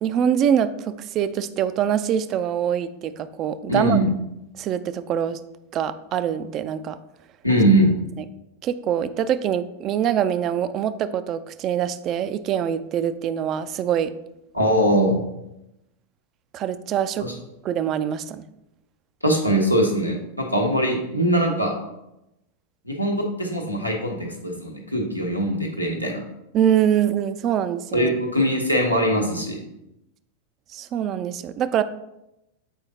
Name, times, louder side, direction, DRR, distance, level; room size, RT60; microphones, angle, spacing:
voice 1, 0.0-4.0 4.6-5.4 5.7-7.0 8.6-14.1 16.5-17.3 17.6-18.4 26.5-28.1 30.7-31.8, right 9 dB, 35° right, 13 dB, 0.3 m, -24 dB
voice 2, 3.7-4.1 7.4-7.9 14.5-15.2 17.2-17.3 19.2-21.7 22.8-26.2 27.9-29.6, right 1 dB, 90° left, 0 dB, 1.0 m, -21 dB
7.4 x 4.8 x 2.8 m, 0.89 s
figure-of-eight pair, 90°, 0 cm